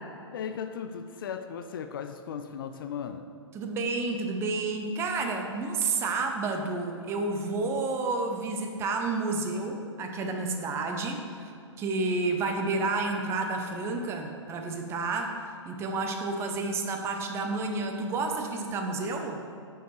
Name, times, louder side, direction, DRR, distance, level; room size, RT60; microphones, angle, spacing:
voice 1, 0.3-3.3, left 7 dB, 45° left, 8 dB, 0.4 m, -36 dB
voice 2, 3.5-11.5 11.8-19.4, right 3 dB, 15° right, 3 dB, 0.5 m, -30 dB
8.8 x 4.6 x 3.1 m, 2.5 s
figure-of-eight pair, 115°, 16 cm